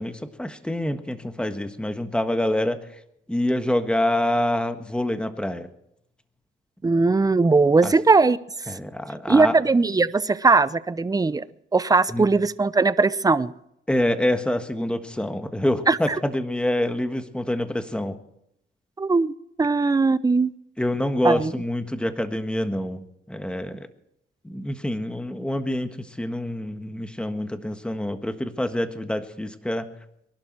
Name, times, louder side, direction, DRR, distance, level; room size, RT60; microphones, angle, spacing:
voice 1, 0.0-2.8 3.3-5.7 7.8-7.9 8.7-9.6 12.1-12.3 13.9-18.2 20.8-23.9 24.4-29.9, left 1 dB, 5° left, 9 dB, 1.5 m, -26 dB
voice 2, 6.8-8.4 9.3-11.4 11.7-13.5 15.9-16.2 19.0-20.5 21.2-21.5, right 3 dB, 20° right, 16 dB, 0.7 m, -19 dB
23.0 x 11.5 x 4.5 m, 0.77 s
cardioid pair, 90°, 20 cm